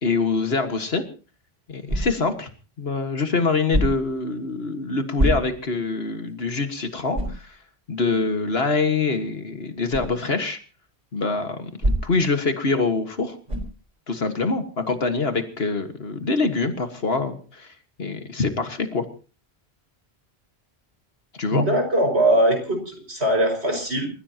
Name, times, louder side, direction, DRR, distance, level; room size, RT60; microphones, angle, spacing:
voice 1, 0.0-1.0 1.7-2.5 2.8-7.6 7.9-10.6 11.1-11.7 12.0-13.4 14.1-17.7 18.0-19.1 21.4-21.6, left 4 dB, 70° left, 7 dB, 1.9 m, -24 dB
sound 1, 1.9-2.4 3.7-4.2 5.2-5.8 6.3-6.4 7.1-7.5 9.9-10.2 11.8-12.3 13.5-13.8, right 1 dB, 40° right, 4.9 m, -25 dB
voice 2, 21.5-24.1, right 1 dB, 85° right, 4 dB, 5.8 m, -21 dB
28.0 x 15.5 x 2.9 m, 0.36 s
omnidirectional pair, 1.1 m